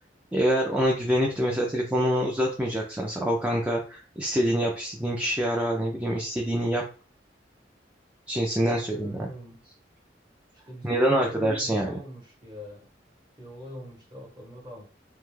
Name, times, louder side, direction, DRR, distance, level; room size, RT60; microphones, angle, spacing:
voice 1, 0.3-6.8 8.3-9.3 10.8-12.0, equal, 10° right, -2 dB, 0.3 m, -25 dB
voice 2, 8.7-9.6 10.6-12.9 13.4-14.8, equal, 25° right, -2 dB, 1.0 m, -43 dB
2.3 x 2.0 x 3.1 m, 0.36 s
head